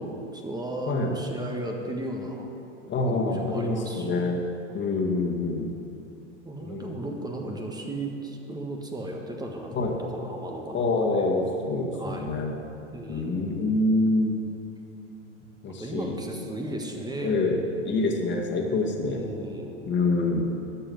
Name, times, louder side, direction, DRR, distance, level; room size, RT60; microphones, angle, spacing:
voice 1, 0.0-2.5 2.8-4.3 6.4-11.3 12.0-12.4 12.9-13.5 15.8-17.4 19.1-20.0 20.4-20.5, right 1 dB, 10° right, 1 dB, 1.5 m, -35 dB
voice 2, 2.9-4.4 4.7-5.7 6.6-7.0 9.7-9.9 10.7-12.5 13.1-14.4 15.6-16.2 17.2-19.3 19.8-20.5, left 2 dB, 30° left, 0 dB, 2.1 m, -26 dB
13.0 x 6.8 x 7.8 m, 2.8 s
hypercardioid pair, 95°, 37 cm